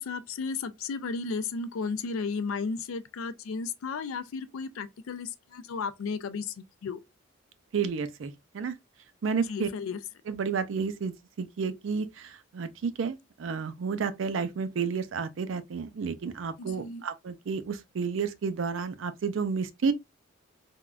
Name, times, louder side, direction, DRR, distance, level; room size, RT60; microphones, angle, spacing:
voice 1, 0.0-6.5 6.8-7.0 9.4-10.0 16.6-17.0, left 5 dB, 90° left, 0.4 m, -34 dB
voice 2, 7.7-8.7 9.2-9.7 10.3-19.9, right 5 dB, 70° right, 0.4 m, -31 dB
3.5 x 2.2 x 2.3 m
head